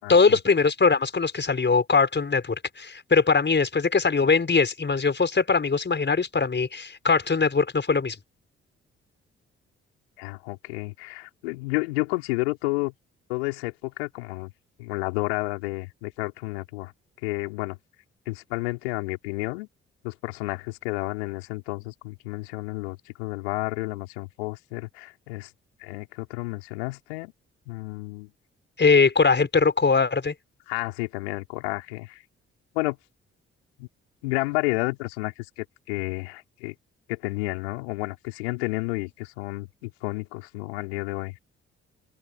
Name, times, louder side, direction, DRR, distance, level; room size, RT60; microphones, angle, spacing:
voice 1, 0.1-8.2 28.8-30.3, left 4 dB, 35° left, 5.4 m, -21 dB
voice 2, 10.2-12.9 13.3-14.5 14.8-16.9 17.2-17.8 18.3-19.7 20.0-25.5 25.8-27.3 27.7-28.3 30.7-32.2 32.7-33.0 33.8-33.9 34.2-36.7 37.1-41.3, left 25 dB, 75° left, 5.6 m, -31 dB
open air
figure-of-eight pair, 40°, 32 cm